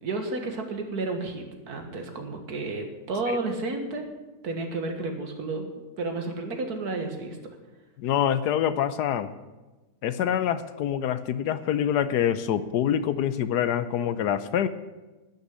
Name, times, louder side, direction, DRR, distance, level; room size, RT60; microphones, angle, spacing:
voice 1, 0.0-4.1 4.4-5.7 6.0-7.4, right 3 dB, 65° right, 5 dB, 2.0 m, -31 dB
voice 2, 8.0-9.3 10.0-14.7, left 9 dB, 75° left, 13 dB, 1.2 m, -25 dB
11.5 x 6.8 x 9.4 m, 1.1 s
omnidirectional pair, 1.8 m